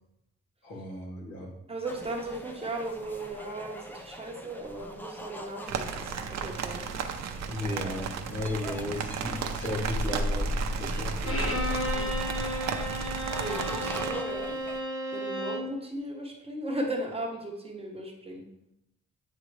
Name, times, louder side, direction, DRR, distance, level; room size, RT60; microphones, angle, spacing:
voice 1, 0.6-1.5 7.5-11.6, left 1 dB, 90° left, -6 dB, 2.3 m, -35 dB
voice 2, 1.7-6.9 11.8-12.3 13.3-14.6 15.1-18.5, right 1 dB, 20° right, 0 dB, 0.9 m, -37 dB
sound 1, 1.8-14.8, equal, 5° left, 0.4 m, -37 dB
sound 2, 5.7-14.1, right 6 dB, 65° right, 0.6 m, -34 dB
Bowed string instrument, 11.2-15.7, equal, 50° left, 1.2 m, -33 dB
8.8 x 3.7 x 3.2 m, 0.85 s
wide cardioid pair, 160°, 30 cm